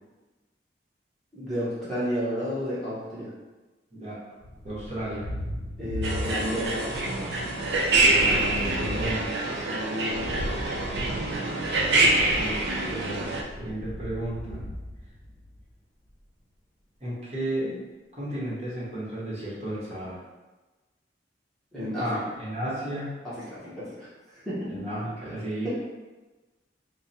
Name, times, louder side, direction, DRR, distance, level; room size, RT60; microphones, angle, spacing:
voice 1, 1.3-3.3 5.8-6.9 9.6-10.3 21.7-22.2 23.2-24.7 25.6-25.7, equal, ahead, -12 dB, 1.0 m, -32 dB
Thunder, 4.4-6.8 7.1-12.0 13.0-15.7, left 1 dB, 30° left, 0.8 m, -38 dB
voice 2, 4.6-5.2 8.0-9.3 12.3-14.6 17.0-17.7 18.2-20.2 22.0-23.1 24.7-25.7, right 1 dB, 35° right, -8 dB, 1.3 m, -33 dB
sound 1, 6.0-13.4, right 2 dB, 70° right, 0.5 m, -25 dB
3.5 x 2.2 x 4.2 m, 1.2 s
head